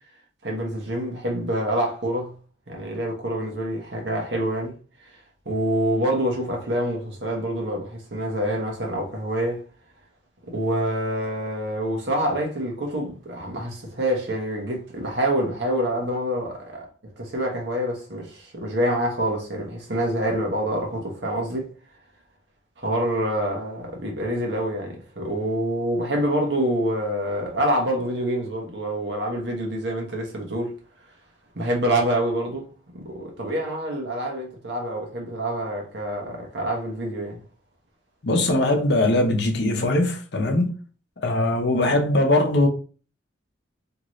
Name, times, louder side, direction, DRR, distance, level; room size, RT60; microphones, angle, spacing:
voice 1, 0.4-2.3 2.7-4.8 5.0-9.6 10.4-21.7 22.8-30.7 31.5-37.4, right 1 dB, 60° right, 1.0 m, -26 dB
voice 2, 38.2-40.7 41.2-42.7, left 2 dB, 60° left, 0.7 m, -21 dB
2.9 x 2.6 x 3.0 m
head